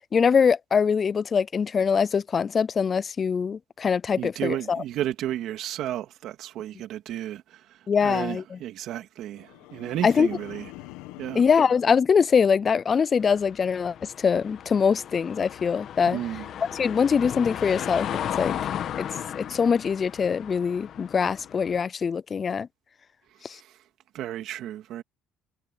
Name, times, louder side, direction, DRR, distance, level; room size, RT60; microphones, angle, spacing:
voice 1, 0.1-4.8 7.9-8.6 10.0-10.3 11.3-16.2 16.7-18.1 18.4-18.6 19.0-19.1 19.4-22.7 23.4-23.6, left 6 dB, 30° left, 0.3 m, -23 dB
voice 2, 4.2-7.6 8.0-10.7 11.2-11.4 16.1-16.4 23.6-23.7 24.1-25.0, right 12 dB, 60° right, 2.2 m, -33 dB
sound 1, 9.3-12.8 13.2-13.6, left 18 dB, 90° left, 1.4 m, -46 dB
sound 2, 13.2-21.8, left 10 dB, 50° left, 1.5 m, -35 dB
cardioid pair, 125°, 0 cm